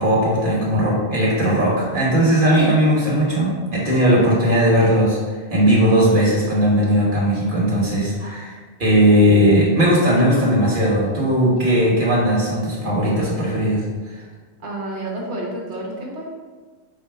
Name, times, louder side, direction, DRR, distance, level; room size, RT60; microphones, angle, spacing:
voice 1, 0.0-5.2 5.5-13.8, equal, 50° right, -5 dB, 1.3 m, -18 dB
voice 2, 14.6-16.3, right 2 dB, 75° right, -3 dB, 1.3 m, -30 dB
4.8 x 2.1 x 4.7 m, 1.4 s
omnidirectional pair, 1.1 m